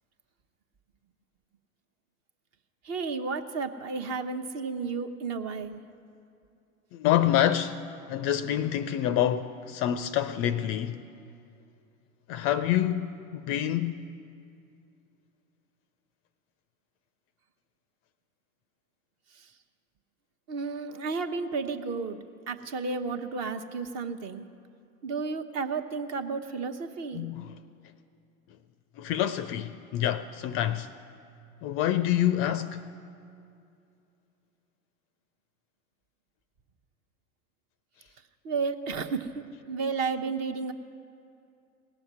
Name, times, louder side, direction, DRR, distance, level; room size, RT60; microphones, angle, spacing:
voice 1, 2.8-5.8 19.3-19.5 20.5-22.2 22.5-24.4 25.0-27.2 38.4-40.7, right 4 dB, 40° right, 0.9 m, -32 dB
voice 2, 6.9-11.1 12.3-14.1 27.1-27.6 29.0-30.9 31.6-32.9, left 11 dB, 35° left, 0.4 m, -27 dB
18.0 x 7.0 x 9.4 m
figure-of-eight pair, 85°, 42 cm